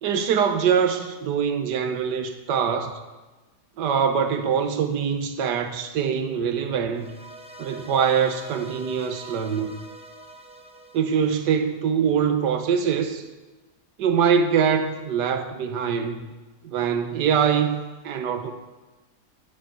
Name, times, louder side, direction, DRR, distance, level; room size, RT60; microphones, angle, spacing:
voice 1, 0.0-3.0 3.8-7.1 7.6-9.8 10.9-13.2 14.0-16.2 16.6-18.5, right 7 dB, 85° right, 8 dB, 1.5 m, -23 dB
sound 1, 6.9-12.2, right 2 dB, 10° right, 0.3 m, -44 dB
9.6 x 5.8 x 7.8 m, 1.2 s
omnidirectional pair, 1.8 m